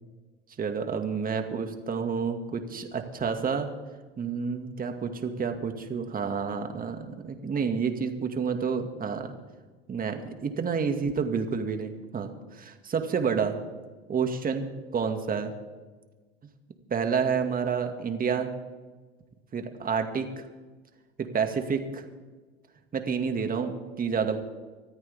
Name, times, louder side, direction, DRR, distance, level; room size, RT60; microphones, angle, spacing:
voice 1, 0.6-3.7 4.2-9.3 9.9-13.5 14.1-14.7 14.9-15.5 16.9-18.5 19.5-20.5 21.2-22.0 22.9-24.4, right 6 dB, 25° right, 5 dB, 2.2 m, -29 dB
24.5 x 14.0 x 3.6 m, 1.3 s
hypercardioid pair, 85°, 31 cm